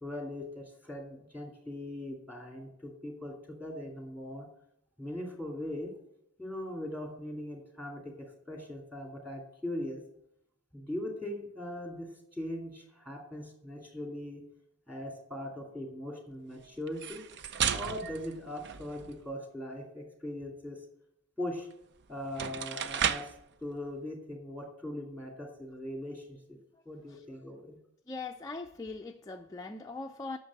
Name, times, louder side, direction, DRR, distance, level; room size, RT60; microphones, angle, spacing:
voice 1, 0.0-4.5 5.0-5.9 6.4-10.0 10.7-14.4 14.9-17.2 17.7-20.9 21.4-21.7 22.1-23.3 23.6-26.6 26.8-27.8, left 1 dB, 10° right, 1 dB, 2.4 m, -40 dB
sound 1, 16.9-19.3 21.7-21.8 22.2-23.4, right 8 dB, 50° right, 0.5 m, -34 dB
voice 2, 28.1-30.4, left 3 dB, 15° left, 4 dB, 0.4 m, -41 dB
8.7 x 6.6 x 8.2 m, 0.77 s
head